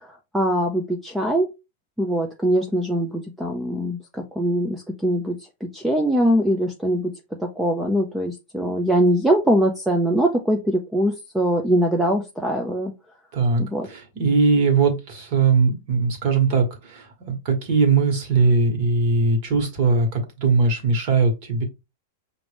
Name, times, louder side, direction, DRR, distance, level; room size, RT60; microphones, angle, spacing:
voice 1, 0.3-1.5 2.0-7.1 7.4-12.9 13.6-13.9, equal, 5° right, 0.4 m, -22 dB
voice 2, 13.3-21.6, right 4 dB, 35° right, 1.4 m, -20 dB
6.1 x 2.6 x 3.4 m
supercardioid pair, 175°, 0 cm